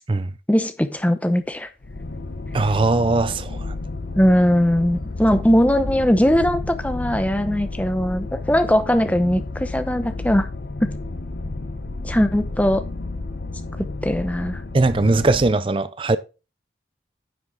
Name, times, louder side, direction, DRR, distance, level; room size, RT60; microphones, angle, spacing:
voice 1, 0.5-1.7 4.2-10.5 10.8-10.9 12.0-12.8 13.8-14.6, equal, 10° left, 0.8 m, -20 dB
Thunder / Rain, 1.4-9.7, left 1 dB, 25° left, 2.4 m, -44 dB
sound 1, 1.8-15.5, left 2 dB, 65° left, 0.8 m, -31 dB
voice 2, 2.5-3.7 14.7-16.2, right 3 dB, 30° right, 0.4 m, -20 dB
9.9 x 6.0 x 3.8 m
head